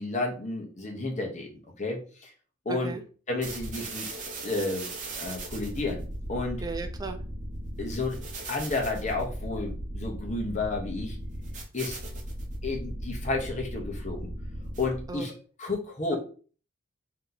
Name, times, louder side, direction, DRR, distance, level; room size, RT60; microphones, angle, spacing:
voice 1, 0.0-2.3 2.6-2.9 3.3-4.1 4.4-6.6 7.8-8.2 8.5-11.2 11.7-12.0 12.6-14.3 14.8-15.3 15.6-16.2, left 3 dB, 35° left, 1 dB, 1.0 m, -31 dB
voice 2, 2.7-3.0 6.6-7.2 15.1-15.3, right 3 dB, 20° right, 5 dB, 0.5 m, -35 dB
sound 1, 3.4-15.2, right 1 dB, 40° right, 0.9 m, -37 dB
3.0 x 2.8 x 3.9 m, 0.38 s
head